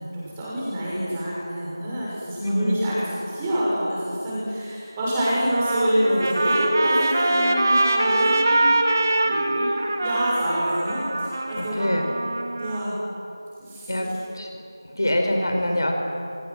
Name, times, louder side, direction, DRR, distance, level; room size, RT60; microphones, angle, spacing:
voice 1, 0.0-8.7 9.2-9.7 10.0-11.9 12.6-12.9 13.6-13.9, equal, 10° right, -7 dB, 6.4 m, -26 dB
voice 2, 2.4-2.8 11.6-12.1 13.9-14.5 14.8-15.9, equal, 65° left, 3 dB, 5.2 m, -24 dB
Trumpet, 5.3-12.8, right 2 dB, 40° right, 2.4 m, -23 dB
28.5 x 27.5 x 6.3 m, 2.6 s
figure-of-eight pair, 170°, 2 cm